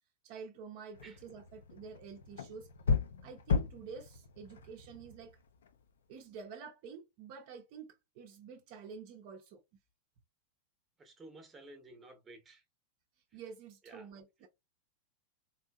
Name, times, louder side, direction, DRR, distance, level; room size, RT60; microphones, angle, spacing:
voice 1, 0.2-2.7 3.2-5.4 6.1-9.6 13.3-14.5, right 5 dB, 45° right, 0.6 m, -49 dB
sound 1, 0.9-5.8, left 5 dB, 65° left, 0.5 m, -36 dB
voice 2, 11.0-12.6 13.3-13.4 13.8-14.1, right 2 dB, 15° right, 0.9 m, -54 dB
3.8 x 2.6 x 2.2 m
figure-of-eight pair, 90°, 0 cm